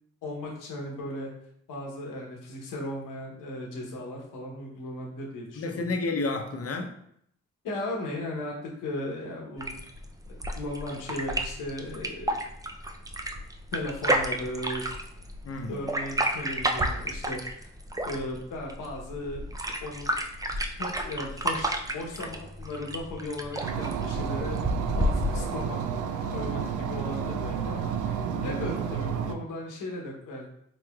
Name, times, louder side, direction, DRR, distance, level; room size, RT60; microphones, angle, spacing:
voice 1, 0.2-1.3 1.7-5.8 7.6-9.7 10.5-12.3 13.7-14.9 15.7-17.7 18.0-19.4 19.8-20.1 20.8-24.6 25.0-25.8 26.3-28.2 28.4-30.5, left 1 dB, 90° left, -1 dB, 1.0 m, -36 dB
voice 2, 5.6-7.0 15.4-15.8 28.3-28.7, left 3 dB, 50° left, 4 dB, 0.7 m, -31 dB
sound 1, 9.6-25.6, right 1 dB, 10° right, 0.4 m, -31 dB
sound 2, 23.6-29.4, right 7 dB, 75° right, 0.5 m, -31 dB
4.0 x 3.1 x 2.3 m, 0.71 s
cardioid pair, 60°, 31 cm